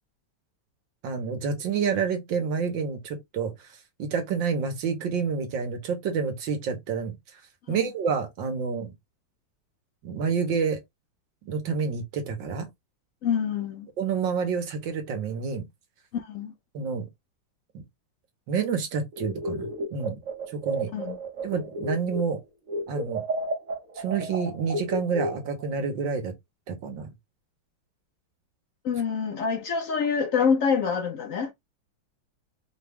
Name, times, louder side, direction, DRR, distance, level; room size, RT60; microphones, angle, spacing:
voice 1, 1.0-7.4 7.7-8.9 10.0-10.8 11.4-12.7 14.0-15.7 16.7-17.1 17.7-17.8 18.5-20.2 20.5-20.9 21.4-22.4 22.9-23.2 24.0-26.3 26.7-27.1, right 5 dB, 70° right, 1.8 m, -29 dB
voice 2, 13.2-13.9 16.1-16.5 20.9-21.2 28.8-31.5, left 6 dB, 75° left, 0.7 m, -26 dB
sound 1, 19.1-22.4 22.7-25.7, right 1 dB, 45° right, 1.4 m, -32 dB
4.9 x 2.4 x 3.5 m
omnidirectional pair, 2.2 m